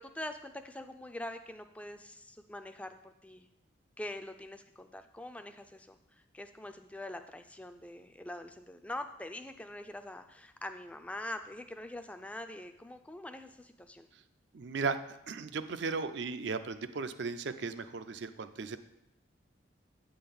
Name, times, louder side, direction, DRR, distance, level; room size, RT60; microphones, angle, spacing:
voice 1, 0.0-3.5 4.0-14.1, left 1 dB, 5° left, 7 dB, 0.3 m, -44 dB
voice 2, 14.5-15.0 15.3-18.8, right 4 dB, 60° right, 11 dB, 0.4 m, -36 dB
8.8 x 3.8 x 6.9 m, 0.87 s
head